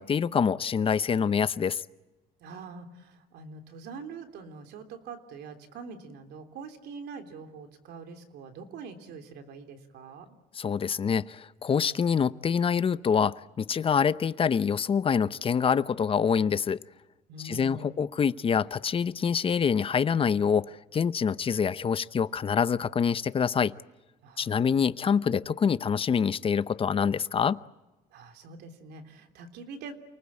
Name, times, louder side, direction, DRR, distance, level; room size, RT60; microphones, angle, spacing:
voice 1, 0.0-1.8 10.6-16.8 17.4-23.7 24.4-27.6, left 6 dB, 35° left, 15 dB, 0.8 m, -26 dB
voice 2, 2.4-10.4 17.3-18.0 24.2-24.7 28.1-29.9, right 4 dB, 75° right, 6 dB, 3.3 m, -44 dB
29.0 x 19.5 x 8.7 m, 1.1 s
cardioid pair, 110°, 17 cm